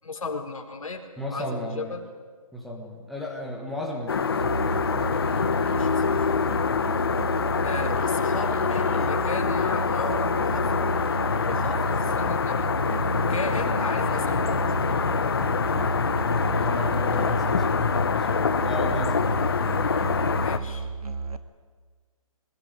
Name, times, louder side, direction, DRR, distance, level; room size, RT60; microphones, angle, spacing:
voice 1, 0.0-2.0 5.6-6.3 7.6-10.9 11.4-12.7 13.1-15.1 20.4-20.9, left 3 dB, 65° left, 4 dB, 4.2 m, -35 dB
voice 2, 1.2-2.0 2.5-4.9 16.4-18.3 18.6-19.5, left 1 dB, ahead, 0 dB, 1.4 m, -35 dB
sound 1, 4.1-20.6, left 6 dB, 40° left, 1.0 m, -25 dB
Musical instrument, 4.4-21.4, right 4 dB, 75° right, 2.0 m, -32 dB
25.0 x 20.5 x 9.5 m, 1.5 s
hypercardioid pair, 175°, 19 cm